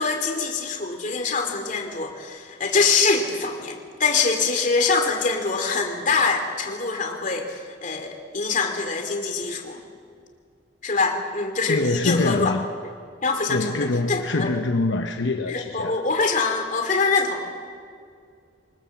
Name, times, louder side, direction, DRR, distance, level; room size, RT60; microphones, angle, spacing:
voice 1, 0.0-9.8 10.8-12.5 12.8-12.9 13.2-13.7 14.1-14.5 15.5-17.5, left 4 dB, 45° left, 4 dB, 2.7 m, -24 dB
voice 2, 11.7-12.7 13.5-16.0, left 2 dB, 75° left, 6 dB, 0.9 m, -24 dB
25.0 x 20.5 x 7.3 m, 2.3 s
head